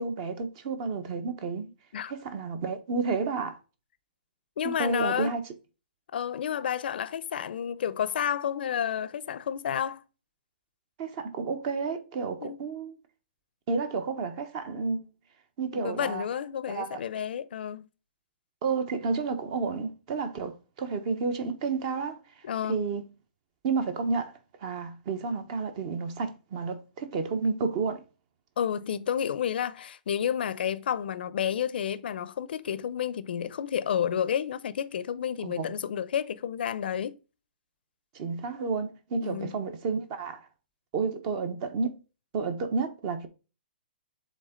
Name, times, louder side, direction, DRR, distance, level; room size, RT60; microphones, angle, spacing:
voice 1, 0.0-1.7 2.1-3.6 4.6-5.4 11.0-13.0 13.7-15.0 15.6-16.2 16.7-17.0 18.6-23.1 23.6-28.0 35.4-35.7 38.1-40.5 40.9-42.0 42.3-43.3, right 4 dB, 40° right, 1.1 m, -31 dB
voice 2, 4.6-5.4 6.1-10.0 12.4-12.6 15.7-17.8 22.4-22.8 28.6-37.1 39.2-39.5, left 9 dB, 65° left, 0.6 m, -30 dB
7.5 x 3.7 x 3.8 m
hypercardioid pair, 150°, 6 cm